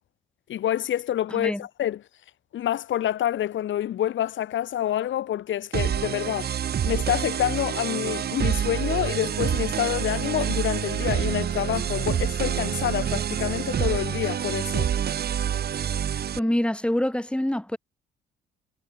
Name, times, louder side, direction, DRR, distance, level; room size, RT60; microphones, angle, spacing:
voice 1, 0.5-2.0 2.5-6.5 6.8-14.9, left 11 dB, 75° left, 4.6 m, -27 dB
voice 2, 1.3-1.6 16.4-17.8, left 1 dB, 5° left, 7.7 m, -25 dB
sound 1, 5.7-16.4, right 9 dB, 55° right, 1.3 m, -27 dB
cardioid pair, 90°, 20 cm